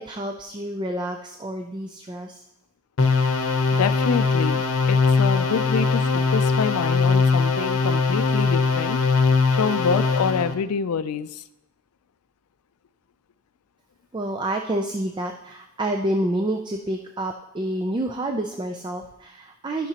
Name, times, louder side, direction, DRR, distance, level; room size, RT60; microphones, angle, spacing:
voice 1, 0.0-2.4 14.1-19.9, right 1 dB, 20° right, 3 dB, 0.4 m, -28 dB
sound 1, 3.0-10.5, left 4 dB, 65° left, 0.9 m, -21 dB
voice 2, 3.7-11.4, left 6 dB, 85° left, 14 dB, 0.4 m, -27 dB
12.0 x 5.9 x 2.9 m, 0.88 s
head